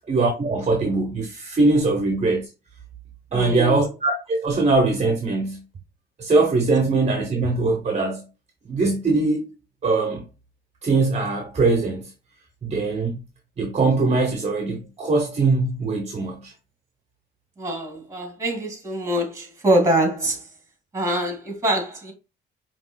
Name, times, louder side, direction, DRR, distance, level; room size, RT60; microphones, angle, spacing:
voice 1, 0.1-2.5 3.3-5.6 6.2-8.3 8.7-9.4 9.8-10.2 10.8-12.1 12.6-13.2 13.6-16.5, right 3 dB, 35° right, 0.9 m, -21 dB
voice 2, 3.3-3.8 17.6-20.4 20.9-22.1, right 1 dB, 15° right, 2.4 m, -24 dB
5.3 x 3.0 x 2.3 m
cardioid pair, 90°, 20 cm